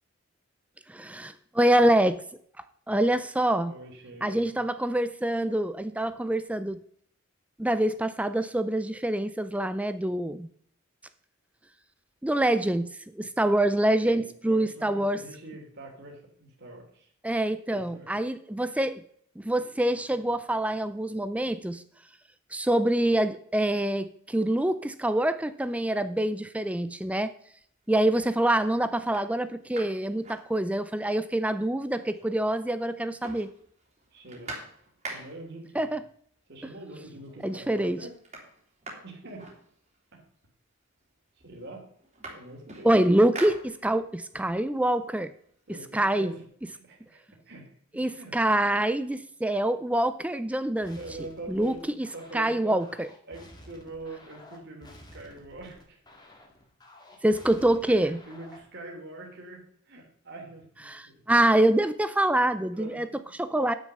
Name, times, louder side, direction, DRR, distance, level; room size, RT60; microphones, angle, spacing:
voice 1, 0.9-2.2 2.9-3.7 4.2-6.8 7.6-10.5 12.2-15.2 17.2-19.0 19.4-21.8 22.5-27.3 27.9-33.5 35.8-36.0 37.4-38.0 42.8-45.3 45.9-46.3 48.0-51.0 51.5-52.1 52.3-53.1 57.2-58.2 60.9-63.1 63.4-63.7, right 1 dB, 5° right, 13 dB, 0.4 m, -25 dB
voice 2, 3.7-4.5 13.9-17.1 17.7-18.2 34.1-34.5 35.1-35.9 36.5-38.2 39.0-39.4 40.1-40.2 41.4-41.8 42.3-42.9 45.7-46.4 46.7-47.8 48.1-48.4 50.9-52.8 53.3-56.0 57.8-61.2 62.7-63.2, right 2 dB, 50° right, 0 dB, 2.9 m, -44 dB
sound 1, 27.6-28.1 28.6-28.7 29.0-31.1 31.4-31.5 31.7-32.6 32.9-35.6 36.5-36.6 37.0-37.5 37.8-40.2 41.0-41.1 41.4-44.2 44.6-46.3, right 2 dB, 30° right, 3.1 m, -45 dB
sound 2, 50.8-58.8, left 1 dB, 20° left, 1.7 m, -52 dB
10.5 x 6.5 x 6.7 m, 0.63 s
head